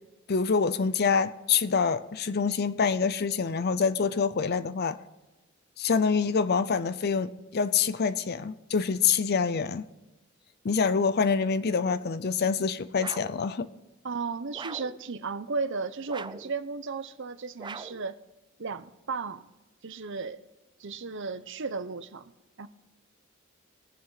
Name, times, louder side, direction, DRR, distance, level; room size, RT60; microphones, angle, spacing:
voice 1, 0.3-5.0 5.8-9.9 10.6-13.7, left 5 dB, 50° left, 0.6 m, -26 dB
sound 1, 13.0-13.4 14.5-15.0 16.1-16.5 17.6-18.1, right 4 dB, 20° right, 0.5 m, -41 dB
voice 2, 14.0-18.2 18.6-19.4 19.8-20.4 20.8-22.3 22.6-22.7, right 4 dB, 65° right, 0.8 m, -34 dB
21.5 x 7.4 x 4.0 m
head